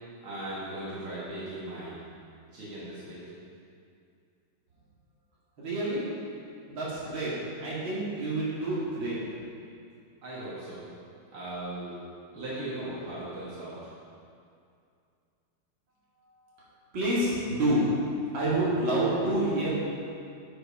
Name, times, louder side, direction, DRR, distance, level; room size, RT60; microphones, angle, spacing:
voice 1, 0.2-2.0 2.5-3.2 10.2-10.8 11.3-11.9 12.3-13.8, right 1 dB, 80° right, -9 dB, 2.8 m, -38 dB
voice 2, 5.6-6.0 6.7-7.3 7.6-9.2 16.9-17.9 18.3-19.7, right 1 dB, 65° right, -9 dB, 3.0 m, -28 dB
9.7 x 5.4 x 5.5 m, 2.4 s
omnidirectional pair, 2.3 m